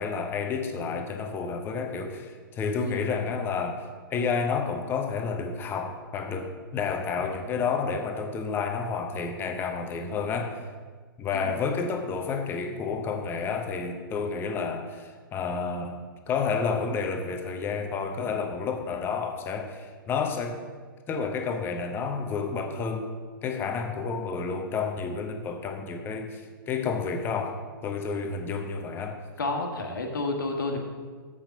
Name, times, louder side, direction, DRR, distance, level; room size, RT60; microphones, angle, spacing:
voice 1, 0.0-10.6 11.2-16.0 16.3-20.6 21.1-23.1 23.4-29.2, left 5 dB, 20° left, 5 dB, 0.8 m, -30 dB
voice 2, 29.4-30.8, left 2 dB, 60° left, 2 dB, 1.5 m, -30 dB
7.5 x 5.9 x 5.5 m, 1.5 s
figure-of-eight pair, 115°, 12 cm